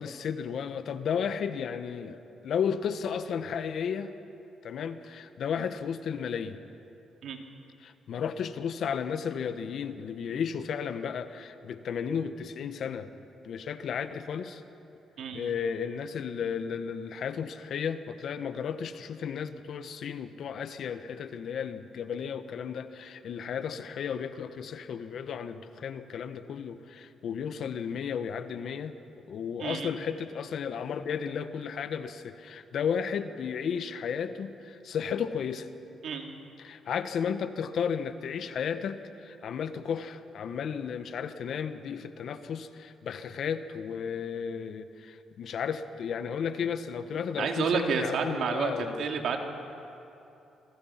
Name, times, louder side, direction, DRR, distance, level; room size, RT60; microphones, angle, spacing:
voice 1, 0.0-4.1 4.6-6.6 7.8-13.1 13.4-14.6 15.3-28.9 29.3-35.7 36.6-49.4, left 7 dB, 65° left, 10 dB, 1.2 m, -33 dB
voice 2, 15.2-15.5 29.6-29.9 36.0-36.3 47.4-49.4, right 5 dB, 70° right, 3 dB, 2.6 m, -30 dB
27.0 x 22.5 x 5.9 m, 2.9 s
cardioid pair, 90°, 0 cm